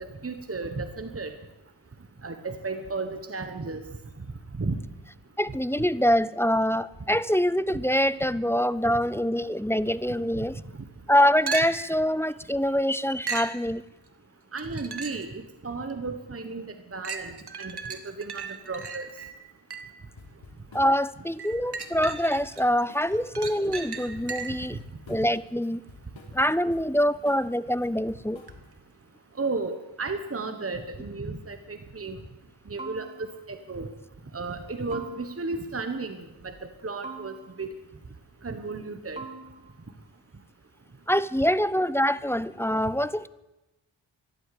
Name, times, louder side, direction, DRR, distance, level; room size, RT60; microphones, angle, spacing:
voice 1, 0.0-1.3 2.2-3.8 4.6-4.8 14.5-16.7 16.9-19.1 29.4-32.2 32.7-33.9 34.3-36.2 36.4-36.5 36.8-37.7 38.4-39.2, right 3 dB, 30° right, 7 dB, 1.3 m, -34 dB
voice 2, 5.4-10.6 11.1-13.8 20.7-24.8 25.1-25.8 26.3-28.4 41.1-43.3, equal, 5° left, 16 dB, 0.4 m, -25 dB
sound 1, 11.5-12.0 13.3-13.6 14.6-15.3 15.9-16.0 17.0-20.0 21.4-22.6 23.0-24.7 28.5-28.6, right 5 dB, 55° right, 1.4 m, -36 dB
sound 2, 20.2-20.9 21.3-22.6 22.9-23.2 23.5-25.4 25.6-26.9 27.3-27.5 27.8-28.9, left 3 dB, 75° left, 3.4 m, -49 dB
sound 3, 32.8-33.6 34.9-35.7 37.0-37.8 39.2-40.0, right 4 dB, 15° right, 1.9 m, -43 dB
14.5 x 11.5 x 8.5 m, 1.0 s
wide cardioid pair, 75°, 46 cm